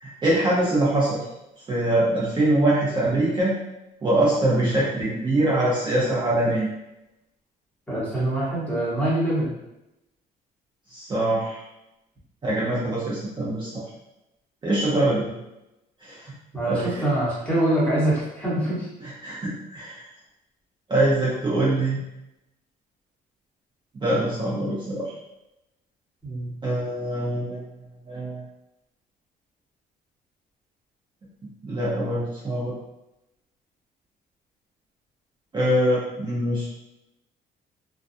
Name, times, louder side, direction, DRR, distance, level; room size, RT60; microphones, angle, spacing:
voice 1, 0.0-1.2 1.7-3.5 4.0-6.7 10.9-11.6 12.4-13.8 14.6-15.2 16.0-16.3 16.7-17.0 19.0-20.0 20.9-22.0 24.0-25.1 26.6-27.6 28.1-28.4 31.6-32.7 35.5-36.7, right 1 dB, 25° right, -7 dB, 0.7 m, -23 dB
voice 2, 7.9-9.5 15.1-15.3 16.5-18.9 26.2-26.5, right 1 dB, 10° left, -8 dB, 1.1 m, -24 dB
2.3 x 2.2 x 2.6 m, 0.90 s
cardioid pair, 110°, 17 cm